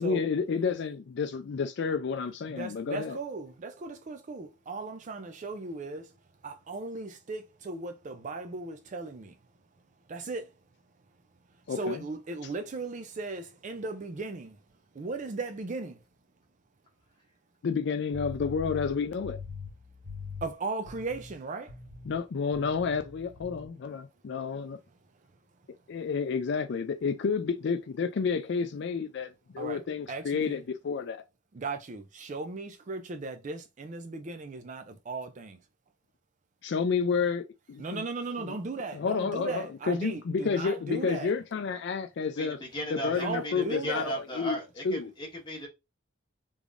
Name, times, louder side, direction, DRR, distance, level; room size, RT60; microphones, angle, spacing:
voice 1, 0.0-3.2 11.7-12.0 17.6-19.4 22.1-24.8 25.9-31.2 36.6-38.0 38.4-38.5 38.9-42.6 42.9-44.6 44.8-45.1, left 5 dB, 60° left, 0.4 m, -30 dB
voice 2, 2.5-6.2 6.4-9.4 10.1-10.5 11.7-14.6 14.9-16.0 20.4-21.8 29.6-30.6 31.5-35.6 37.8-41.3 43.0-44.2, right 3 dB, 40° right, 0.4 m, -37 dB
sound 1, 18.1-20.5 20.8-21.4 21.7-22.2 22.5-23.7, left 5 dB, 5° left, 1.8 m, -43 dB
voice 3, 42.7-45.7, right 1 dB, 25° left, 1.4 m, -36 dB
3.5 x 3.4 x 2.5 m
head